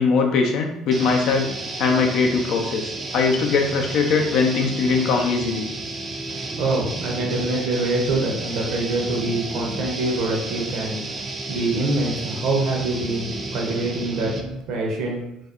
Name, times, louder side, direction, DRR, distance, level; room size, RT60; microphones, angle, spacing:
voice 1, 0.0-1.5 1.8-5.7 9.3-9.4 9.6-9.7, left 4 dB, 65° left, 3 dB, 0.4 m, -21 dB
sound 1, 0.9-14.6, right 2 dB, 35° right, 0.4 m, -32 dB
voice 2, 6.6-15.2, right 2 dB, 70° right, -1 dB, 0.7 m, -25 dB
2.5 x 2.0 x 2.4 m, 0.82 s
hypercardioid pair, 65°, 0 cm